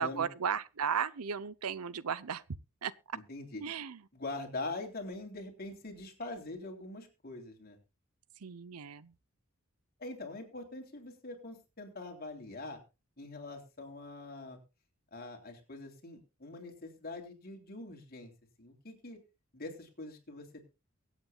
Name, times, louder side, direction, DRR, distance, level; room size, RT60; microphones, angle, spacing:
voice 1, 0.0-2.4 2.8-3.2 3.6-4.0 8.4-9.1, right 7 dB, 85° right, 0.7 m, -35 dB
voice 2, 3.1-3.6 4.1-7.8 10.0-12.8 13.2-14.6 15.1-18.3 18.6-19.2 19.5-20.5, left 2 dB, 45° left, 3.3 m, -43 dB
23.5 x 8.6 x 2.3 m
head